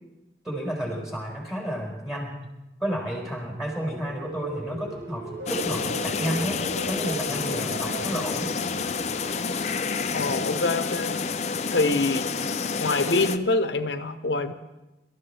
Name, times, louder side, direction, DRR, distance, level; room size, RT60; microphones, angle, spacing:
voice 1, 0.4-2.4 2.8-8.5, equal, 5° right, -2 dB, 4.6 m, -31 dB
sound 1, 3.2-10.4 10.8-11.2, right 1 dB, 90° right, 2.6 m, -39 dB
sound 2, 5.5-13.4, left 5 dB, 40° left, 0.6 m, -29 dB
voice 2, 10.1-11.2 11.7-12.3 12.8-14.5, left 2 dB, 85° left, 8 dB, 1.1 m, -25 dB
25.5 x 13.5 x 3.5 m, 0.99 s
head